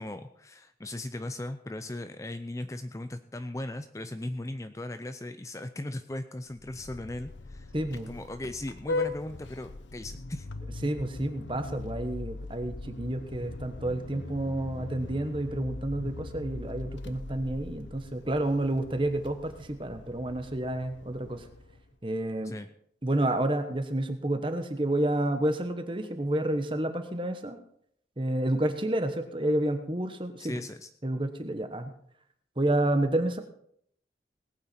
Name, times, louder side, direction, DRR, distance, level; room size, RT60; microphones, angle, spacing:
voice 1, 0.0-7.7 8.1-10.5 22.4-22.7 30.4-30.9, left 1 dB, 15° left, 9 dB, 0.5 m, -38 dB
Vehicle horn car horn honking, 6.5-21.9, left 2 dB, 90° left, 0.8 m, -40 dB
voice 2, 7.7-8.1 10.8-21.5 22.0-22.5 23.0-27.6 28.2-30.6 31.0-31.9 32.6-33.4, right 1 dB, 30° right, 8 dB, 1.2 m, -30 dB
19.5 x 8.9 x 4.4 m, 0.68 s
head